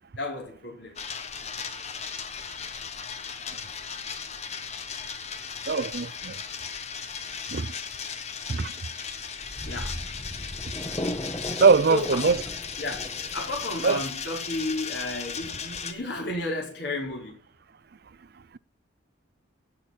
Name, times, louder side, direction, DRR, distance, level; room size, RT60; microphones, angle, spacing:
voice 1, 0.2-1.0 9.6-10.0 11.9-12.3 12.8-17.4, left 2 dB, 55° left, 5.2 m, -32 dB
sound 1, 1.0-15.9, left 6 dB, 35° left, 1.1 m, -36 dB
voice 2, 5.7-6.4 7.5-7.7 8.5-8.7 11.6-12.4 13.8-14.0, right 4 dB, 50° right, 0.5 m, -21 dB
sound 2, 9.4-16.2, equal, 20° left, 1.2 m, -37 dB
17.0 x 6.5 x 4.4 m
head